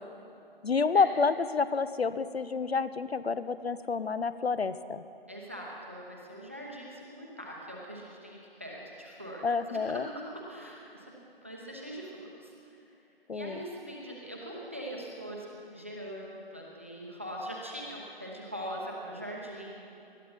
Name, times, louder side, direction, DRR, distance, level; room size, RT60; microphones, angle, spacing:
voice 1, 0.6-5.0 9.4-10.1 13.3-13.6, left 4 dB, 80° left, 13 dB, 0.8 m, -29 dB
voice 2, 5.3-11.1 11.4-12.9 13.3-19.8, equal, 15° right, -2 dB, 0.9 m, -42 dB
20.0 x 12.5 x 5.6 m, 2.7 s
figure-of-eight pair, 175°, 30 cm